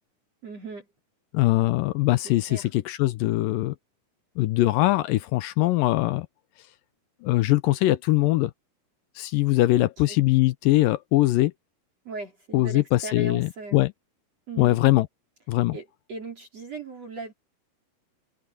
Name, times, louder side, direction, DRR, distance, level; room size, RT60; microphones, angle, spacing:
voice 1, 0.4-0.9 2.5-2.7 9.7-10.2 12.0-13.8 14.5-14.8 15.7-17.3, right 4 dB, 40° right, 4.8 m, -38 dB
voice 2, 1.3-3.8 4.4-6.3 7.2-8.5 9.2-11.5 12.5-13.9 14.6-15.1 15.5-15.8, left 17 dB, 80° left, 2.1 m, -22 dB
open air
omnidirectional pair, 4.6 m